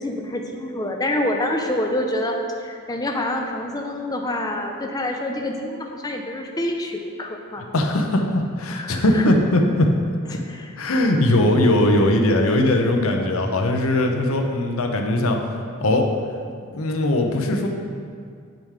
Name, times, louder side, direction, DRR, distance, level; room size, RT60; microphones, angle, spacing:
voice 1, 0.0-7.6 8.7-9.2 10.5-10.7, left 1 dB, 15° left, 2 dB, 0.6 m, -27 dB
voice 2, 7.6-9.9 10.3-10.4 10.8-15.4 15.8-16.1 16.7-17.7, left 1 dB, 70° left, 3 dB, 0.8 m, -20 dB
7.4 x 5.2 x 4.7 m, 2.2 s
head